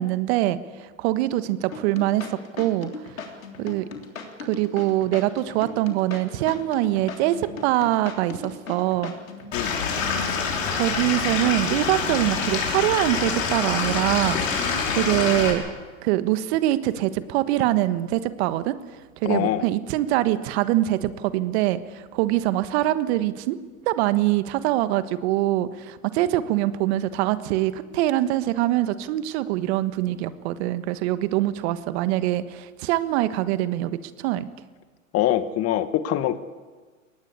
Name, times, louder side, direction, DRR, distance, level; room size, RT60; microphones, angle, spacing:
voice 1, 0.0-2.9 3.6-3.9 4.4-9.1 10.7-15.6 16.0-18.8 19.2-23.6 23.8-34.5, right 15 dB, 55° right, 13 dB, 1.4 m, -24 dB
sound 1, 1.7-9.5, left 4 dB, 85° left, 3.4 m, -38 dB
Stream / Liquid, 9.5-15.5, left 5 dB, 70° left, 6.2 m, -26 dB
voice 2, 19.2-19.6 35.1-36.4, left 12 dB, 35° left, 12 dB, 1.5 m, -23 dB
22.5 x 18.5 x 8.4 m, 1.4 s
hypercardioid pair, 105°, 40 cm